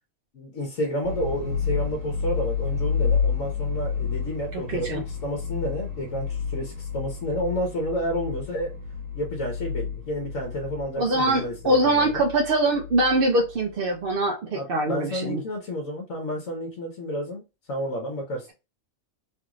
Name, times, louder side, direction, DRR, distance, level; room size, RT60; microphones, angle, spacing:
voice 1, 0.3-8.8 9.1-12.2 14.5-17.4 17.7-18.5, equal, 70° left, 1.3 m, -31 dB
sound 1, 1.0-13.9, left 6 dB, 70° right, 1.3 m, -30 dB
voice 2, 4.5-5.0 11.0-15.4, right 2 dB, 55° right, 0.6 m, -23 dB
3.3 x 2.5 x 3.0 m
omnidirectional pair, 1.4 m